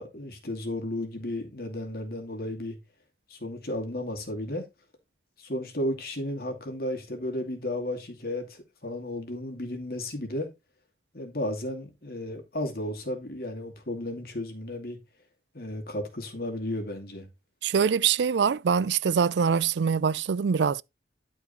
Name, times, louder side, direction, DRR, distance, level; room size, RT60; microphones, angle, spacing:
voice 1, 0.0-2.8 3.3-4.7 5.4-10.5 11.1-15.0 15.5-17.3, left 1 dB, 55° left, 2.5 m, -33 dB
voice 2, 17.6-20.8, right 6 dB, 80° right, 0.4 m, -24 dB
11.5 x 4.7 x 4.1 m
head